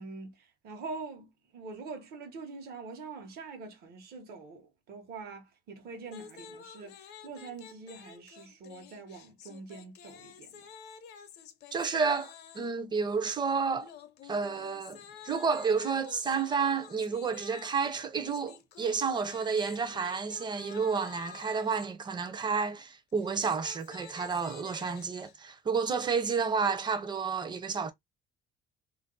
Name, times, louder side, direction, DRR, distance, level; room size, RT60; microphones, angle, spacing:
voice 1, 0.0-10.6, right 4 dB, 65° right, 1.0 m, -44 dB
sound 1, 6.1-12.8 13.8-21.9 23.1-25.3, left 8 dB, 75° left, 0.6 m, -50 dB
voice 2, 11.7-13.9 14.2-15.0 15.2-27.9, right 5 dB, 25° right, 0.6 m, -30 dB
2.5 x 2.0 x 3.7 m
cardioid pair, 110°, 17 cm